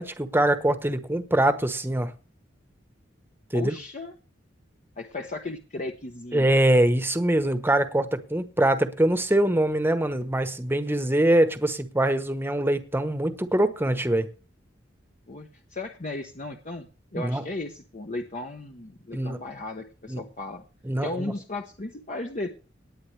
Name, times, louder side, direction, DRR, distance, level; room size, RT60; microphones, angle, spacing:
voice 1, 0.0-2.1 3.5-3.7 6.3-14.3 17.2-17.4 19.1-19.4 20.1-20.2 20.8-21.3, right 1 dB, 10° right, 1.1 m, -23 dB
voice 2, 3.5-4.1 5.0-6.5 15.3-20.6 21.0-22.5, left 2 dB, 40° left, 1.1 m, -35 dB
19.0 x 9.1 x 3.4 m
head